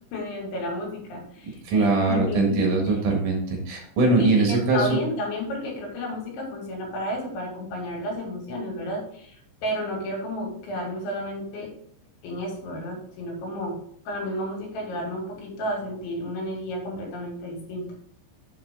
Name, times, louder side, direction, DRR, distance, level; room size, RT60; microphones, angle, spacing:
voice 1, 0.1-2.7 4.2-11.7 12.2-13.8 14.1-17.9, left 1 dB, 75° left, -1 dB, 4.8 m, -32 dB
voice 2, 1.6-5.0, right 3 dB, 55° right, 0 dB, 2.6 m, -22 dB
7.6 x 7.2 x 3.8 m, 0.63 s
omnidirectional pair, 5.5 m